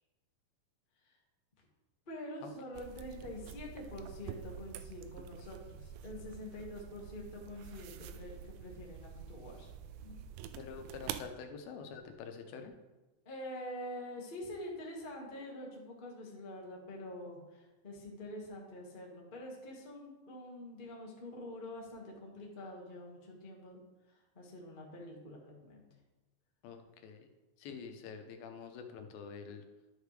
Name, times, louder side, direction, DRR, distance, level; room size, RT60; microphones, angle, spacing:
voice 1, 2.1-9.7 10.0-10.2 13.2-23.8 24.1-25.8, left 1 dB, 40° left, -2 dB, 0.7 m, -46 dB
sound 1, 2.7-11.3, right 9 dB, 85° right, 2.3 m, -47 dB
voice 2, 10.6-12.7 26.6-27.3 27.6-29.6, left 6 dB, 90° left, 6 dB, 2.8 m, -46 dB
12.0 x 6.5 x 3.3 m, 1.1 s
omnidirectional pair, 4.1 m